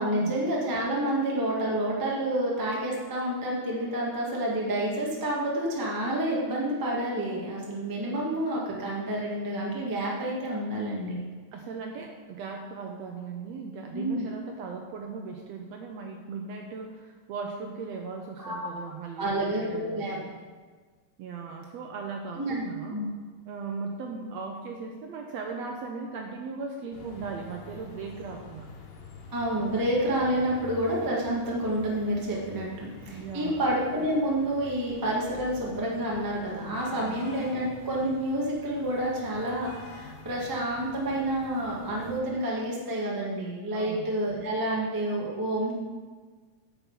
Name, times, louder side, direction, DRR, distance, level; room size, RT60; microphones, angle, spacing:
voice 1, 0.0-11.2 13.9-14.2 18.4-18.7 19.2-20.2 22.4-22.6 22.9-23.1 29.3-45.7, right 1 dB, 15° right, -4 dB, 0.7 m, -29 dB
voice 2, 11.5-20.3 21.2-23.0 23.4-28.7 33.1-33.6 37.0-37.3 43.7-44.1, right 4 dB, 75° right, 2 dB, 1.6 m, -38 dB
sound 1, 26.9-42.2, left 3 dB, 90° left, 2.6 m, -47 dB
9.8 x 5.8 x 5.5 m, 1.4 s
omnidirectional pair, 3.6 m